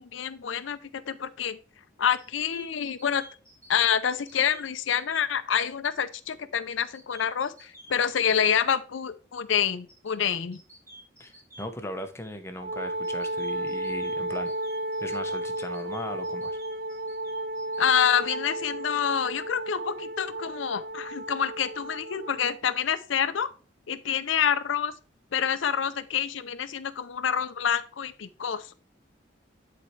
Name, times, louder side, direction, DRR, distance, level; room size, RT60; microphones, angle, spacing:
voice 1, 0.0-1.6 2.0-3.2 3.7-10.6 17.8-23.5 23.9-24.9 25.3-28.7, left 8 dB, 85° left, 11 dB, 0.5 m, -27 dB
sound 1, 2.2-5.3 6.8-8.5 9.9-11.7 13.0-17.8, right 1 dB, 15° right, 2.0 m, -51 dB
voice 2, 11.2-14.5 15.0-16.6, left 1 dB, 15° left, 6 dB, 0.9 m, -38 dB
Wind instrument woodwind instrument, 12.6-22.6, right 1 dB, 45° right, 0.3 m, -33 dB
11.0 x 4.3 x 3.2 m, 0.37 s
head